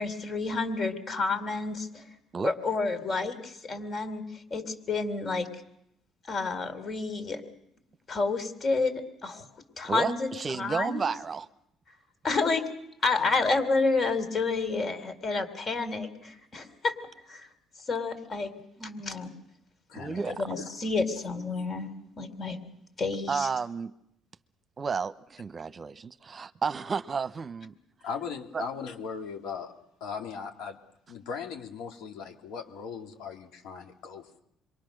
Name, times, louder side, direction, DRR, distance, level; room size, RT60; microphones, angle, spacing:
voice 1, 0.0-2.0 2.4-5.5 6.3-7.4 8.1-8.9 9.2-9.5 9.8-11.1 12.2-12.6 13.0-16.9 17.3-17.5 17.9-18.5 18.8-19.3 20.2-21.9 22.2-22.6 23.0-23.5, left 3 dB, 45° left, 9 dB, 3.9 m, -29 dB
voice 2, 9.9-11.5 19.9-20.3 23.3-23.9 24.8-27.7 28.5-28.6, right 5 dB, 40° right, 13 dB, 0.9 m, -32 dB
voice 3, 19.9-20.2 21.5-21.6 28.0-29.7 30.0-30.8 31.1-34.4, left 6 dB, 80° left, 3 dB, 2.9 m, -38 dB
27.0 x 23.5 x 6.6 m, 0.78 s
supercardioid pair, 75°, 0 cm